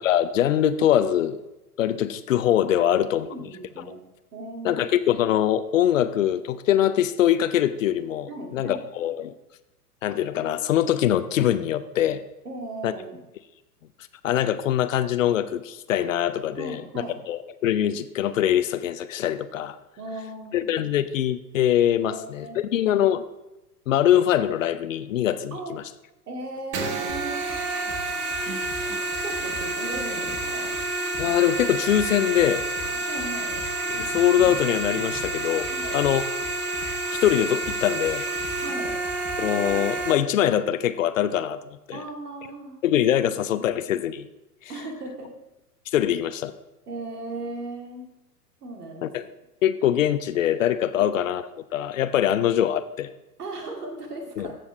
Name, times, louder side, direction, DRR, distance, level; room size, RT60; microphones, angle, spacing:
voice 1, 0.0-1.4 1.8-3.3 4.6-9.3 10.0-12.2 12.8-12.9 14.2-16.8 17.3-19.8 20.5-22.5 22.7-23.2 23.9-25.8 31.2-32.6 33.9-36.2 37.2-38.3 39.4-41.6 41.9-42.0 42.8-44.3 45.9-46.5 49.0-49.3 49.6-53.1 54.4-54.5, left 11 dB, 55° left, 13 dB, 0.6 m, -23 dB
voice 2, 3.2-4.0 4.3-4.8 8.3-8.8 12.4-13.2 16.6-17.2 20.0-20.7 22.0-22.8 25.5-25.8 26.3-27.5 29.2-30.7 32.9-33.6 35.7-36.0 38.6-38.9 41.9-42.8 44.7-45.3 46.9-48.1 48.6-49.1 50.9-51.1 53.4-54.6, right 2 dB, 70° right, 2 dB, 2.5 m, -37 dB
sound 1, 26.7-40.1, right 2 dB, 30° right, 1.2 m, -29 dB
sound 2, 27.1-27.6 27.9-28.8 29.1-30.8 31.1-32.1 32.4-34.1 34.4-35.3 35.6-37.3 37.6-38.5 38.8-40.1, left 1 dB, 25° left, 1.5 m, -42 dB
15.0 x 7.0 x 3.3 m, 0.98 s
figure-of-eight pair, 100°, 48 cm